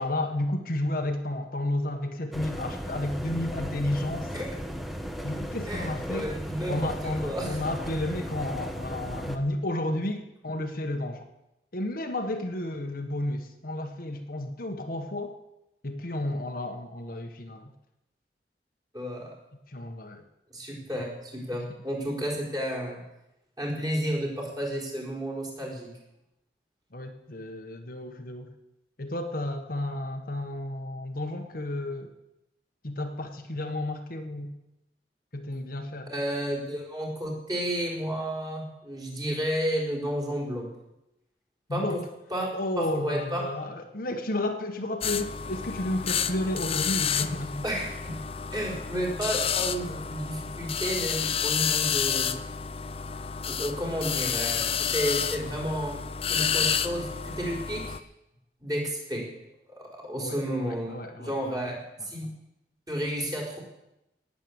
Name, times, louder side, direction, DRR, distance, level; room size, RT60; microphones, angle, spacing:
voice 1, 0.0-4.3 5.2-6.3 6.7-11.3 11.7-15.4 15.8-17.7 19.7-20.2 26.9-28.5 29.0-32.1 32.8-34.5 35.3-36.1 41.7-42.0 42.5-47.6 60.2-61.6 62.2-62.3, left 1 dB, 55° left, 4 dB, 1.4 m, -32 dB
sound 1, 2.3-9.4, equal, ahead, 1.2 m, -36 dB
voice 2, 5.7-7.6 18.9-19.3 20.5-23.0 23.6-25.9 36.1-40.7 41.7-42.0 42.3-42.5 42.8-43.4 47.6-48.1 48.5-52.4 53.5-56.0 56.3-57.9 58.6-59.3 59.7-60.9 61.2-61.8 62.0-62.3 62.9-63.6, equal, 20° right, -2 dB, 4.4 m, -31 dB
sound 2, 45.0-58.0, left 8 dB, 35° left, 0.6 m, -30 dB
18.5 x 7.9 x 8.0 m, 0.89 s
head